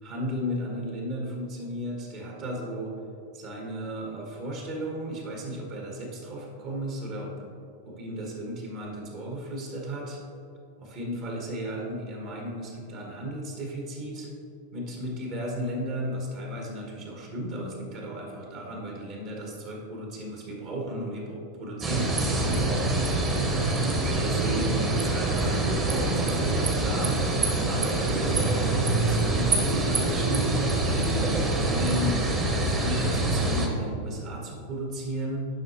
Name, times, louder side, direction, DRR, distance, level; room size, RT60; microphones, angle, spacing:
voice 1, 0.0-2.9 3.3-7.3 7.8-10.2 10.8-14.3 14.7-23.6 24.0-27.2 27.6-35.5, equal, 40° right, -1 dB, 1.6 m, -34 dB
sound 1, 21.8-33.7, right 2 dB, 20° right, 1.2 m, -25 dB
10.5 x 5.7 x 3.1 m, 2.6 s
figure-of-eight pair, 90°, 0 cm